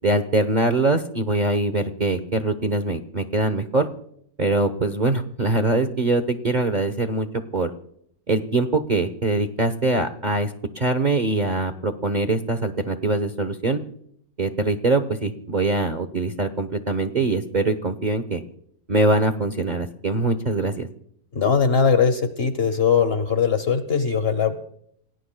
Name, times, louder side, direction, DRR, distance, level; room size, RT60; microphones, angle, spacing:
voice 1, 0.0-3.9 4.4-7.3 7.5-7.7 8.3-13.8 14.4-18.4 18.9-20.9, right 2 dB, 35° right, 8 dB, 0.9 m, -23 dB
voice 2, 21.3-24.6, left 6 dB, 45° left, 10 dB, 1.1 m, -20 dB
28.5 x 18.0 x 2.3 m, 0.69 s
omnidirectional pair, 1.7 m